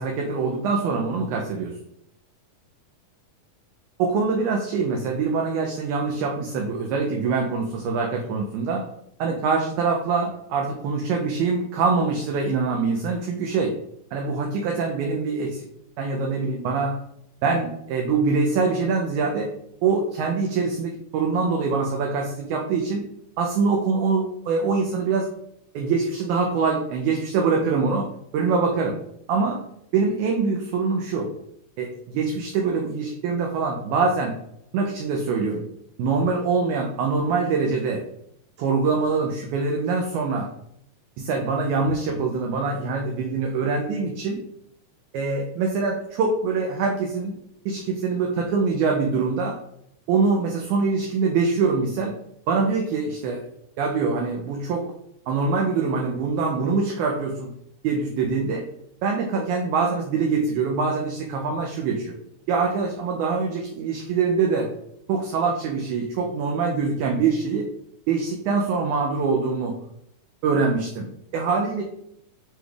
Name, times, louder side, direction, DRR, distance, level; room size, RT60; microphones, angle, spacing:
voice 1, 0.0-1.7 4.0-8.9 9.2-13.8 14.1-15.6 16.0-17.0 17.4-19.5 19.8-23.0 23.4-25.3 25.7-29.0 29.3-29.7 29.9-31.3 31.8-34.4 34.7-35.7 36.0-38.0 38.6-40.5 41.2-44.4 45.1-47.4 47.7-49.6 50.1-52.2 52.5-53.4 53.8-54.9 55.3-57.5 57.8-58.7 59.0-62.2 62.5-64.7 65.1-67.7 68.1-69.8 70.4-71.8, right 4 dB, 80° right, 2 dB, 1.8 m, -24 dB
6.1 x 3.3 x 2.3 m, 0.75 s
omnidirectional pair, 3.9 m